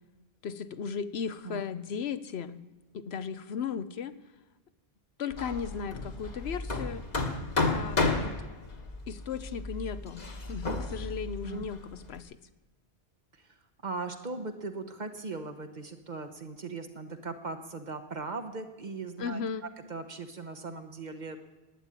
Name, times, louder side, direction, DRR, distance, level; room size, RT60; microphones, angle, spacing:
voice 1, 0.4-2.6 2.9-4.1 5.2-7.0 7.6-8.3 9.1-12.4 19.2-19.6, left 6 dB, 85° left, 13 dB, 1.0 m, -36 dB
Hammer, 5.3-12.2, left 3 dB, 40° left, 1.5 m, -33 dB
voice 2, 13.8-21.4, right 3 dB, 45° right, 7 dB, 1.3 m, -39 dB
11.5 x 9.9 x 9.0 m, 1.2 s
omnidirectional pair, 1.1 m